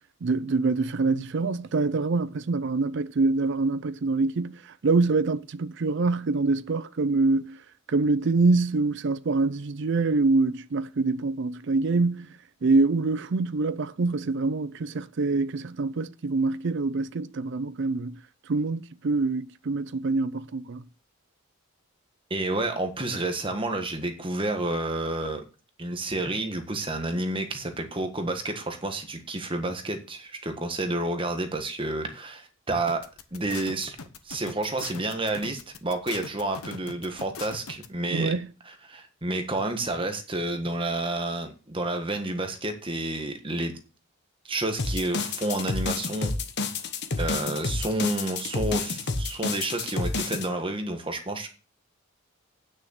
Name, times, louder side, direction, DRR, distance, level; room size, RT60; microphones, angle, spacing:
voice 1, 0.2-7.6 7.9-12.3 12.6-18.2 18.5-20.8 38.1-38.5, right 3 dB, 55° right, 0.5 m, -25 dB
voice 2, 22.3-25.4 25.8-33.0 33.3-34.0 34.2-38.3 38.6-43.7 44.4-46.3 47.2-51.5, right 2 dB, 25° right, 1.5 m, -30 dB
sound 1, 32.9-37.9, left 5 dB, 90° left, 1.2 m, -40 dB
sound 2, 44.8-50.5, left 3 dB, 50° left, 1.2 m, -29 dB
9.3 x 6.4 x 6.5 m
head